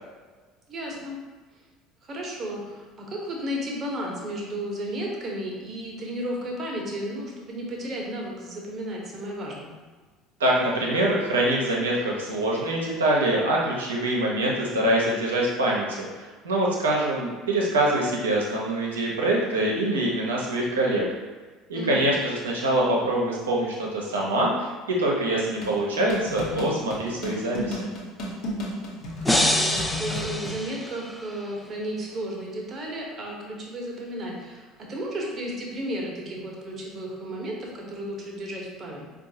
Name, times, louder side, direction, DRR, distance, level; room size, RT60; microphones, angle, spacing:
voice 1, 0.7-1.2 2.0-9.8 21.8-22.1 29.2-39.1, right 1 dB, 35° right, -1 dB, 0.9 m, -33 dB
voice 2, 10.4-21.0 21.7-27.8, right 1 dB, 80° right, -3 dB, 0.7 m, -24 dB
sound 1, 25.6-30.6, left 1 dB, 55° left, 0.9 m, -33 dB
sound 2, 29.2-31.4, left 1 dB, 5° left, 0.4 m, -26 dB
4.5 x 2.4 x 2.7 m, 1.4 s
figure-of-eight pair, 65°, 0 cm